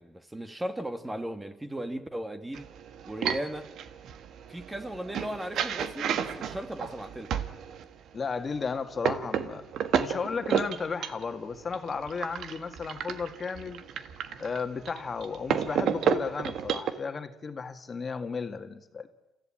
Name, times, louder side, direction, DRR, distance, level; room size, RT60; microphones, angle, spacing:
voice 1, 0.0-2.7 3.1-3.7 4.5-7.3, right 1 dB, 15° right, 1.8 m, -36 dB
sound 1, 2.5-7.8 8.5-16.9, right 8 dB, 75° right, 1.5 m, -32 dB
voice 2, 8.1-9.7 10.0-13.8 14.4-19.1, left 5 dB, 40° left, 1.9 m, -34 dB
28.5 x 15.0 x 8.7 m
cardioid pair, 90°, 0 cm